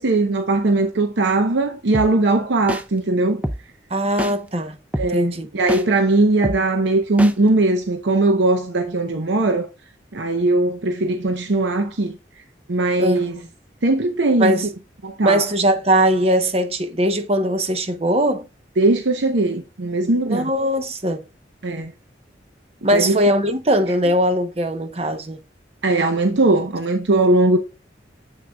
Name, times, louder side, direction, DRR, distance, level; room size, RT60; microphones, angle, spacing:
voice 1, 0.0-3.4 5.0-9.7 10.1-12.1 12.7-13.3 13.8-14.5 15.0-15.4 18.8-20.5 21.6-21.9 22.9-23.2 25.8-27.6, right 2 dB, 80° right, 0.8 m, -19 dB
sound 1, 1.9-2.1 2.7-2.8 3.4-3.6 4.2-4.3 4.9-5.1 5.7-5.8 6.4-6.6 7.2-7.3, equal, 10° right, 0.4 m, -24 dB
voice 2, 3.9-4.8 5.1-5.5 13.0-13.5 14.4-14.7 15.2-18.5 20.3-21.2 22.8-25.4, right 1 dB, 35° right, 0.8 m, -20 dB
7.6 x 6.0 x 2.3 m
head